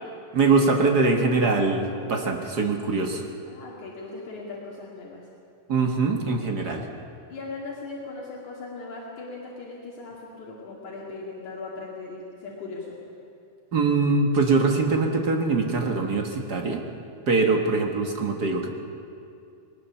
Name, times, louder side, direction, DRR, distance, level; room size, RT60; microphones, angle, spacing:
voice 1, 0.3-3.2 5.7-6.8 13.7-16.8 17.3-18.7, right 3 dB, 45° right, 2 dB, 1.5 m, -23 dB
voice 2, 3.5-5.2 7.3-13.2, left 3 dB, 70° left, -3 dB, 3.6 m, -38 dB
20.5 x 19.0 x 7.0 m, 2.6 s
omnidirectional pair, 3.6 m